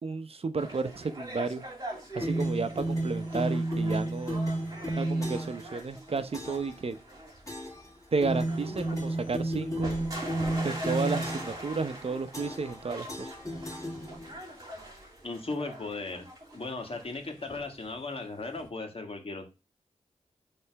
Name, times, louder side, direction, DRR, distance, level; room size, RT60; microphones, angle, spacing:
voice 1, 0.0-1.6 2.2-4.4 5.0-7.0 8.1-9.9 10.6-13.3, right 4 dB, 55° right, 10 dB, 0.7 m, -32 dB
sound 1, 0.6-18.7, right 1 dB, 30° right, 3.0 m, -43 dB
sound 2, 2.2-5.6 6.3-6.7 7.5-7.9 8.2-11.7 12.3-12.8 13.1-14.4, right 1 dB, 25° left, 2.0 m, -32 dB
voice 2, 15.2-16.3 16.5-19.5, left 3 dB, 50° left, 3 dB, 1.7 m, -37 dB
6.4 x 3.3 x 4.7 m, 0.28 s
cardioid pair, 50°, 12 cm